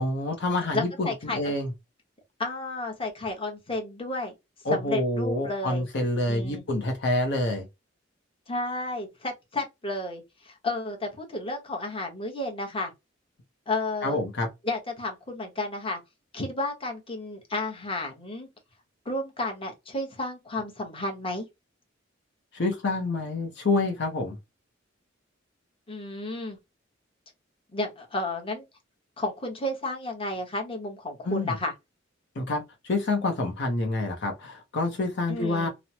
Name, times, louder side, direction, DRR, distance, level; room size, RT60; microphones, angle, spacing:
voice 1, 0.0-1.7 4.6-7.7 14.0-14.5 22.5-24.4 31.2-31.6 32.4-35.7, left 2 dB, 65° left, 0.7 m, -27 dB
voice 2, 0.7-1.5 2.4-4.3 4.7-5.9 6.3-6.6 8.5-12.9 13.7-14.2 14.6-16.0 16.3-18.5 19.0-21.5 25.9-26.6 27.7-28.6 29.2-31.7 35.3-35.7, left 2 dB, 30° left, 1.0 m, -32 dB
3.1 x 2.0 x 2.8 m
head